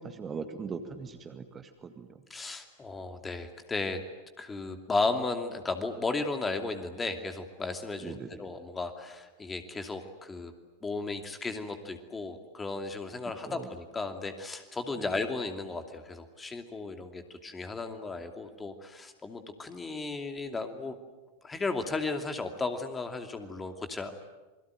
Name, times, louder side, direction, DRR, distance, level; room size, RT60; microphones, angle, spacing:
voice 1, 0.0-2.1 8.0-8.3 13.5-13.7 15.0-15.1, right 5 dB, 20° right, 8 dB, 2.0 m, -40 dB
voice 2, 2.3-4.0 4.4-10.5 10.8-21.0 21.4-24.2, left 3 dB, 15° left, 7 dB, 2.6 m, -35 dB
28.0 x 22.5 x 9.2 m, 1.2 s
figure-of-eight pair, 90°, 0 cm